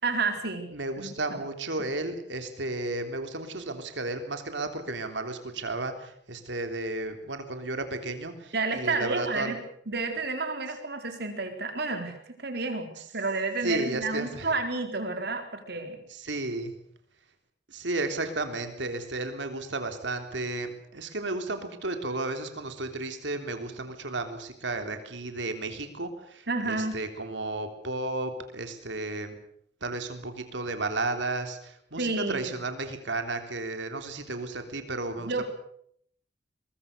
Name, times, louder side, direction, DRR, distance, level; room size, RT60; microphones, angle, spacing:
voice 1, 0.0-0.7 1.0-1.4 8.5-9.6 9.9-12.9 13.1-16.0 26.5-27.0 32.0-32.4 35.2-35.4, right 3 dB, 60° right, 6 dB, 4.3 m, -30 dB
voice 2, 0.7-9.6 13.6-14.5 16.1-16.7 17.7-29.4 29.8-35.4, right 2 dB, 75° right, 7 dB, 3.4 m, -33 dB
22.5 x 22.5 x 6.8 m, 0.67 s
head